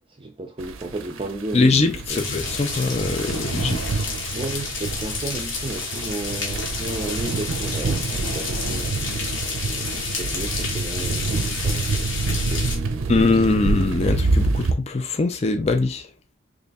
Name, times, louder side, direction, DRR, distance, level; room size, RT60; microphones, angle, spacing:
voice 1, 0.2-2.4 4.3-13.1 13.5-13.6, right 2 dB, 25° right, 0.5 m, -34 dB
sound 1, 0.6-14.7, right 3 dB, 80° right, 0.5 m, -27 dB
voice 2, 1.5-4.0 12.3-12.4 13.1-16.1, left 3 dB, 30° left, 0.4 m, -22 dB
sound 2, 2.1-12.8, left 4 dB, 70° left, 1.1 m, -30 dB
3.3 x 2.6 x 4.0 m
head